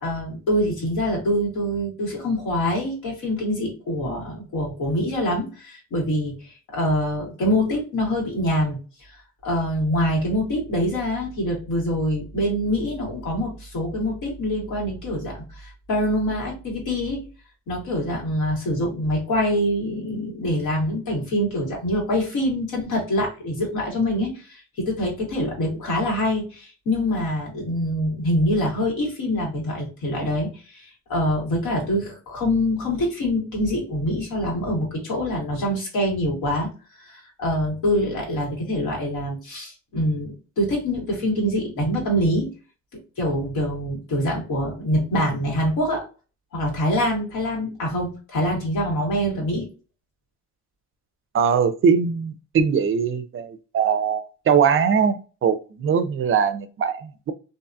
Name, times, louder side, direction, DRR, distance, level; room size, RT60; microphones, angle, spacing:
voice 1, 0.0-6.3 6.7-8.8 9.4-17.3 17.7-36.7 37.0-42.5 43.2-46.0 46.5-49.7, equal, 85° left, 1.5 m, -25 dB
voice 2, 51.3-57.3, right 6 dB, 45° right, 0.4 m, -21 dB
2.6 x 2.3 x 2.6 m
cardioid pair, 90°, 30 cm